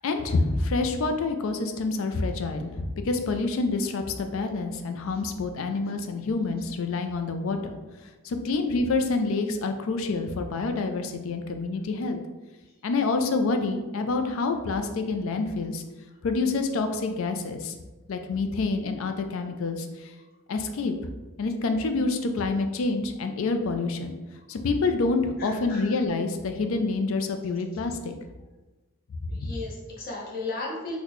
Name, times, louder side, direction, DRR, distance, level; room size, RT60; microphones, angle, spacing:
voice 1, 0.0-7.8 8.2-12.2 12.8-15.8 16.2-17.7 18.1-20.1 20.5-20.9 21.4-24.2 24.5-28.1 29.2-29.6, left 3 dB, 65° left, 6 dB, 0.4 m, -27 dB
voice 2, 25.4-26.0 29.3-31.0, left 2 dB, 40° left, -3 dB, 0.8 m, -35 dB
4.0 x 2.1 x 3.0 m, 1.2 s
head